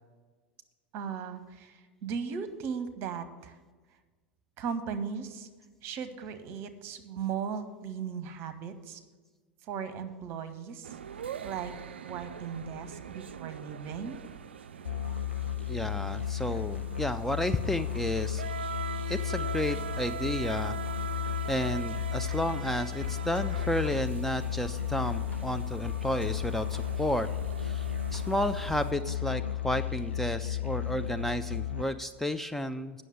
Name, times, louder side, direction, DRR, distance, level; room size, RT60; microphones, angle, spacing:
voice 1, 0.9-3.6 4.6-5.5 5.8-9.0 9.6-11.0 11.4-11.7 12.0-14.2, right 6 dB, 45° right, 11 dB, 0.9 m, -37 dB
sound 1, 10.8-28.9, right 8 dB, 75° right, 0.3 m, -42 dB
Musical instrument, 14.9-31.8, left 11 dB, 85° left, 0.6 m, -34 dB
voice 2, 15.7-18.4 19.1-20.8 21.2-27.3 27.6-33.0, left 1 dB, 5° left, 8 dB, 0.4 m, -32 dB
sound 2, 22.5-22.6 23.0-25.4 25.7-26.8 27.4-27.5 28.1-28.2 28.7-29.0, left 3 dB, 25° left, 1.3 m, -48 dB
9.1 x 6.4 x 7.8 m, 1.4 s
figure-of-eight pair, 80°, 6 cm